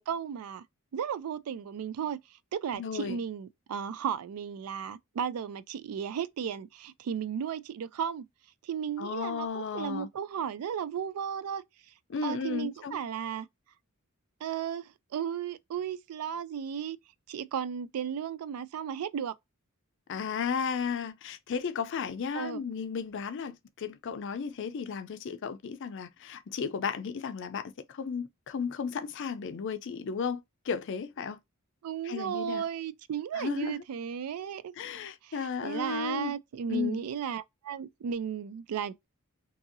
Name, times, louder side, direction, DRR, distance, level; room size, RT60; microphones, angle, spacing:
voice 1, 0.1-0.6 0.9-2.2 2.5-8.2 8.7-11.6 12.2-13.5 14.4-17.0 17.3-19.3 22.3-22.6 31.8-34.7 35.6-39.1, right 8 dB, 85° right, 0.3 m, -34 dB
voice 2, 2.7-3.2 9.0-10.1 12.1-13.0 20.1-31.4 32.0-32.7 33.3-33.8 34.8-36.3 36.7-37.0, left 6 dB, 55° left, 0.4 m, -34 dB
2.7 x 2.6 x 2.5 m
head